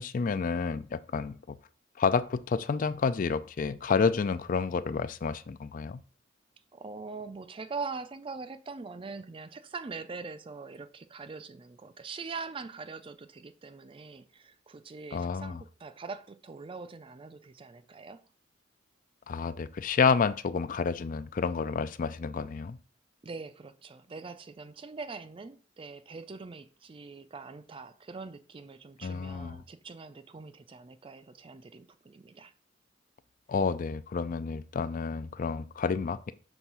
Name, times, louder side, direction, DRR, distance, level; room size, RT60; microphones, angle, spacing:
voice 1, 0.0-1.6 2.0-6.0 15.1-15.6 19.3-22.8 29.0-29.6 33.5-36.3, left 5 dB, 45° left, 0.4 m, -29 dB
voice 2, 6.7-18.2 23.2-32.5, right 4 dB, 30° right, 0.4 m, -43 dB
6.1 x 3.4 x 5.5 m
head